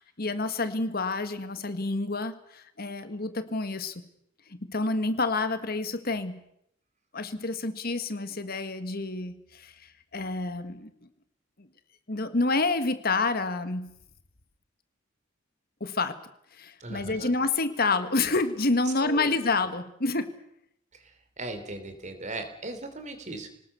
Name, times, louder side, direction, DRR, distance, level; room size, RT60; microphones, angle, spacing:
voice 1, 0.0-3.9 4.5-6.4 7.1-10.9 11.6-11.7 12.1-13.9 15.8-16.2 16.5-20.3, left 3 dB, 50° left, 10 dB, 1.6 m, -28 dB
voice 2, 16.8-17.3 19.0-19.4 21.4-23.5, right 2 dB, 35° right, 7 dB, 3.4 m, -37 dB
26.0 x 19.5 x 6.9 m, 0.74 s
head